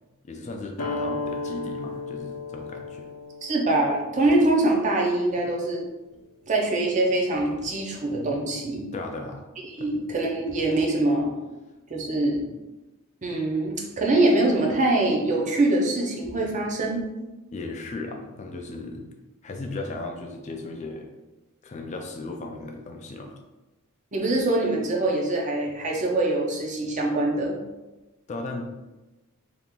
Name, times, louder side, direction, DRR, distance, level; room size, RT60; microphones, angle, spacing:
voice 1, 0.2-3.1 8.9-9.4 9.8-9.9 17.5-19.0 19.4-21.1 21.6-23.4 28.3-28.6, left 2 dB, 35° left, 3 dB, 0.3 m, -36 dB
sound 1, 0.8-5.9, left 3 dB, 75° left, 0.7 m, -35 dB
voice 2, 3.4-5.9 6.5-8.8 9.8-11.3 11.9-12.5 13.2-17.0 24.1-27.6, right 2 dB, 35° right, -1 dB, 0.6 m, -24 dB
2.8 x 2.4 x 3.6 m, 1.1 s
head